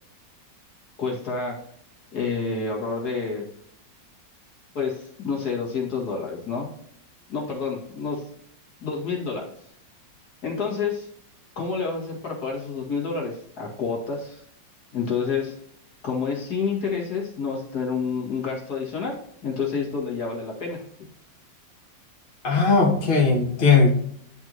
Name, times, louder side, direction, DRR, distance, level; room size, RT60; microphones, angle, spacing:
voice 1, 1.0-1.6 2.1-3.4 4.7-6.7 7.3-8.2 8.8-9.5 10.4-11.1 11.6-14.4 14.9-15.5 16.0-20.8, left 5 dB, 60° left, -2 dB, 2.4 m, -28 dB
voice 2, 22.4-23.9, left 4 dB, 30° left, -3 dB, 1.5 m, -18 dB
10.5 x 4.5 x 2.7 m, 0.68 s
omnidirectional pair, 2.0 m